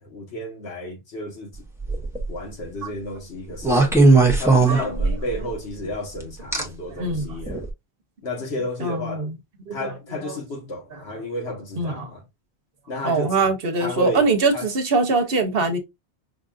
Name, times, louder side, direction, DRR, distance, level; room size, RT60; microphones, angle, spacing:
voice 1, 0.0-1.6 2.3-4.0 4.4-7.6 8.2-9.3 9.7-12.2 12.9-13.5 13.8-14.3 14.5-14.7, left 1 dB, 70° left, 1.6 m, -32 dB
sound 1, 1.8-2.3 3.6-5.4 6.5-6.6 7.5-7.6, right 3 dB, 5° right, 0.8 m, -17 dB
voice 2, 3.9-4.2 4.6-5.2 5.8-5.9 6.9-7.3 8.8-9.3 9.7-9.9 10.2-10.3 11.8-12.1 13.0-15.8, right 3 dB, 60° right, 1.1 m, -23 dB
5.2 x 2.6 x 2.4 m
omnidirectional pair, 1.2 m